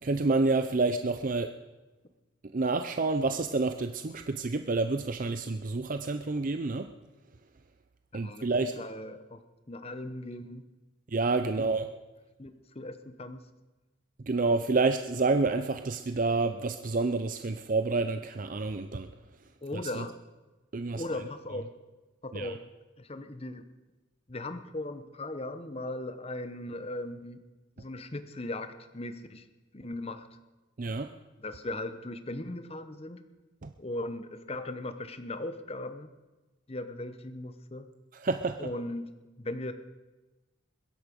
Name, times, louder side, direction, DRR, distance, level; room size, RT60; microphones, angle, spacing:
voice 1, 0.0-1.5 2.5-6.9 8.1-8.7 11.1-11.9 14.2-19.1 19.7-20.0 20.7-21.0 22.3-22.5 30.8-31.1 33.6-33.7 38.1-38.7, right 3 dB, 40° right, 8 dB, 0.5 m, -28 dB
voice 2, 8.1-9.4 9.7-10.7 11.4-11.8 12.4-13.4 19.6-20.2 20.9-21.7 22.2-22.7 23.0-23.7 24.3-27.4 27.8-29.5 29.7-30.3 31.4-33.2 33.8-36.1 36.7-37.9 38.6-39.7, left 1 dB, 30° left, 10 dB, 0.9 m, -38 dB
21.5 x 11.0 x 5.2 m, 1.1 s
head